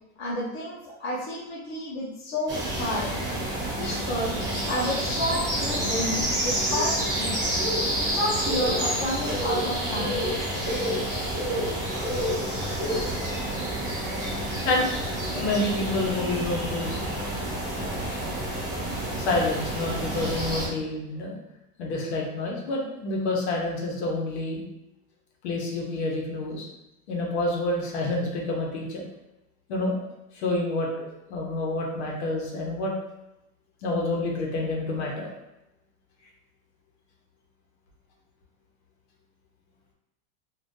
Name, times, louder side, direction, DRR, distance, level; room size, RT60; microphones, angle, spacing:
voice 1, 0.2-3.1 3.6-7.4 8.0-10.2, left 1 dB, 35° left, -6 dB, 0.8 m, -31 dB
sound 1, 2.5-20.7, right 1 dB, 10° right, 0.3 m, -28 dB
voice 2, 15.3-17.0 19.2-21.3 21.8-24.6 25.4-26.7 27.1-29.0 29.7-30.0 30.3-32.9 33.8-35.3, left 2 dB, 65° left, -1 dB, 0.9 m, -28 dB
2.6 x 2.4 x 3.6 m, 0.91 s
supercardioid pair, 175°, 35 cm